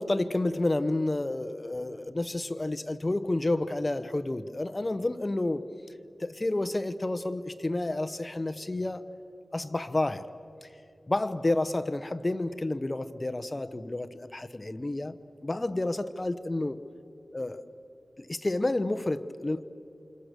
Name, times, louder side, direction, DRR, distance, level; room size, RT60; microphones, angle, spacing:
voice 1, 0.0-5.7 6.2-9.1 9.5-10.3 10.6-10.7 11.1-15.2 15.4-16.8 17.3-17.6 18.2-19.6, left 2 dB, 30° left, 1.0 m, -30 dB
29.0 x 26.5 x 6.8 m
wide cardioid pair, 70°, 0 cm